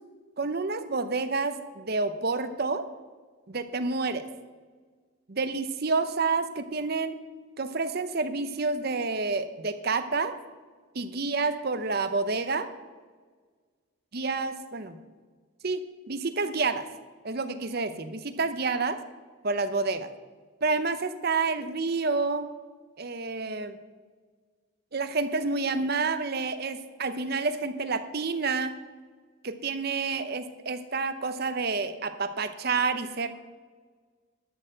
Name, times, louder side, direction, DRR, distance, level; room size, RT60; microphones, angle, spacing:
voice 1, 0.4-2.8 3.5-4.2 5.3-7.2 7.6-10.3 10.9-12.7 14.1-15.0 15.6-15.8 16.1-16.9 17.2-19.0 19.4-20.1 20.6-22.5 23.0-23.8 24.9-28.7 29.4-33.3, right 4 dB, 45° right, 10 dB, 0.7 m, -29 dB
11.5 x 6.5 x 7.7 m, 1.5 s
head